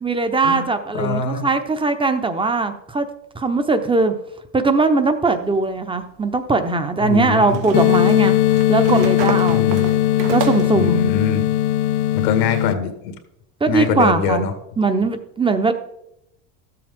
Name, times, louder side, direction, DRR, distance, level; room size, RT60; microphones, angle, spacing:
voice 1, 0.0-3.1 3.3-4.1 4.5-8.3 8.7-9.7 10.3-11.1 13.6-14.4 14.8-15.7, right 3 dB, 10° right, 9 dB, 0.8 m, -20 dB
voice 2, 0.9-1.5 7.0-7.6 9.5-9.9 10.7-11.5 12.1-13.1 13.7-14.5, left 5 dB, 90° left, 7 dB, 1.8 m, -23 dB
sound 1, 5.5-5.6 7.5-10.8, right 8 dB, 70° right, 1.4 m, -29 dB
sound 2, 7.7-12.7, left 14 dB, 55° left, 0.6 m, -18 dB
13.0 x 7.8 x 3.6 m, 0.82 s
supercardioid pair, 115°, 48 cm